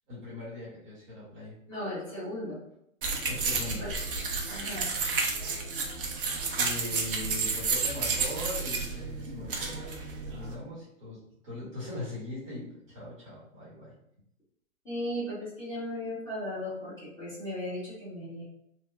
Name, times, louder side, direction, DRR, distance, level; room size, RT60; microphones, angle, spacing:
voice 1, 0.1-1.5 3.3-3.9 6.6-9.9 10.2-13.9, left 2 dB, 25° right, -8 dB, 0.9 m, -40 dB
voice 2, 1.7-2.6 3.8-3.9 4.5-4.8 9.3-9.4 14.8-18.4, left 1 dB, 10° left, -11 dB, 1.1 m, -36 dB
sound 1, 3.0-10.5, right 4 dB, 40° right, 0.5 m, -31 dB
2.8 x 2.0 x 2.3 m, 0.72 s
hypercardioid pair, 135°, 41 cm